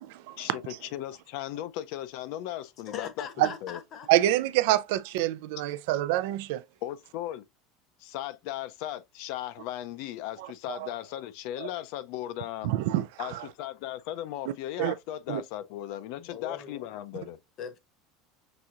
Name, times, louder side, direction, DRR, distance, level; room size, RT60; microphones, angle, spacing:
voice 1, 0.4-3.8 6.8-7.4 8.0-12.7 13.2-17.4, left 13 dB, 55° left, 0.5 m, -37 dB
voice 2, 2.9-4.1 16.2-16.9 17.6-17.8, left 7 dB, 35° left, 0.9 m, -40 dB
voice 3, 4.1-6.6 11.6-11.7 12.6-13.0 14.8-14.9 15.3-15.4, right 14 dB, 65° right, 0.4 m, -26 dB
5.9 x 2.7 x 2.4 m
supercardioid pair, 165°, 0 cm